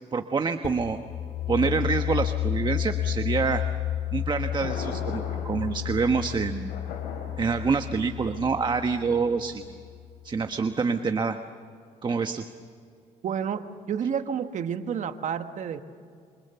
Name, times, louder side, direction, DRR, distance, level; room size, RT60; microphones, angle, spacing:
voice 1, 0.1-1.0 1.5-3.6 4.1-6.7 7.4-9.6 10.2-11.4 12.0-12.4, right 5 dB, 35° right, 7 dB, 1.3 m, -26 dB
sound 1, 0.6-10.2, left 12 dB, 50° left, 2.0 m, -31 dB
Thunder, 3.8-9.8, left 4 dB, 90° left, 4.9 m, -41 dB
voice 2, 13.2-15.8, right 7 dB, 60° right, 8 dB, 1.4 m, -30 dB
28.5 x 27.5 x 7.0 m, 2.3 s
cardioid pair, 95°, 14 cm